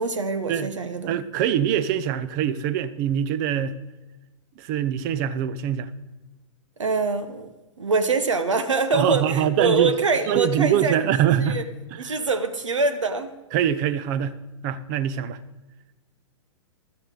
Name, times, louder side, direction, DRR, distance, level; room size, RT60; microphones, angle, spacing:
voice 1, 0.0-1.2 6.8-7.5 7.8-11.0 11.4-11.7 12.0-13.3, right 4 dB, 75° right, 1.1 m, -24 dB
voice 2, 1.1-3.7 4.6-5.9 8.9-9.9 10.3-11.6 11.9-12.2 13.5-14.4 14.6-15.4, right 9 dB, 40° right, 0.8 m, -23 dB
16.0 x 12.5 x 3.9 m
figure-of-eight pair, 110°, 16 cm